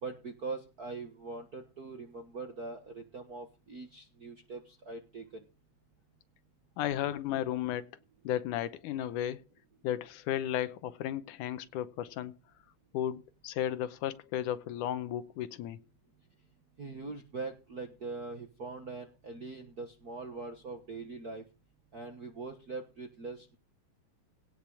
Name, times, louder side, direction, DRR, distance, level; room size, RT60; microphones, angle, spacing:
voice 1, 0.0-5.4 16.8-21.4 21.9-23.6, right 3 dB, 50° right, 1.1 m, -42 dB
voice 2, 6.8-7.9 8.2-9.4 9.8-12.3 12.9-15.8, left 11 dB, 80° left, 2.3 m, -34 dB
17.5 x 6.0 x 4.8 m
omnidirectional pair, 3.7 m